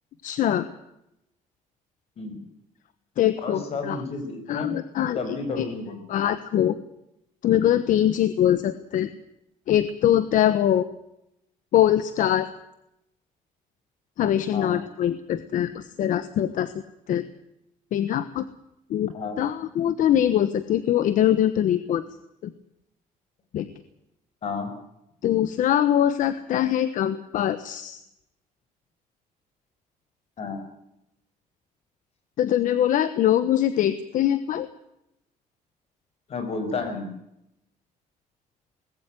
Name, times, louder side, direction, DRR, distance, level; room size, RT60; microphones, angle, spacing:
voice 1, 0.2-0.7 3.2-4.0 4.5-5.7 6.1-6.8 7.4-9.1 9.7-10.9 11.7-12.5 14.2-16.7 17.1-17.2 17.9-18.4 18.9-22.0 22.4-22.5 23.5-23.7 25.2-28.0 32.4-34.7, left 11 dB, 65° left, 13 dB, 1.2 m, -23 dB
voice 2, 3.4-4.7 5.1-6.0 14.5-14.8 19.1-19.4 24.4-24.7 30.4-30.6 36.3-37.1, left 3 dB, 45° left, 8 dB, 5.6 m, -31 dB
20.0 x 16.0 x 9.1 m, 0.83 s
cardioid pair, 150°, 15 cm